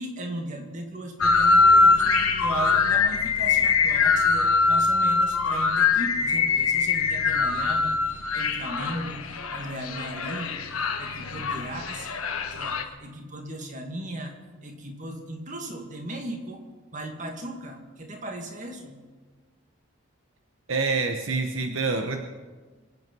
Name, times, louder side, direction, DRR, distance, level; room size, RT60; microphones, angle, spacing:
voice 1, 0.0-2.1 2.4-9.2 9.5-10.6 11.0-12.1 12.5-16.6 16.9-19.0, right 1 dB, 35° right, 3 dB, 2.2 m, -37 dB
sound 1, 1.2-12.8, left 4 dB, 90° left, 1.4 m, -22 dB
voice 2, 20.7-22.2, right 4 dB, 70° right, 5 dB, 1.0 m, -26 dB
25.5 x 9.3 x 5.5 m, 1.4 s
head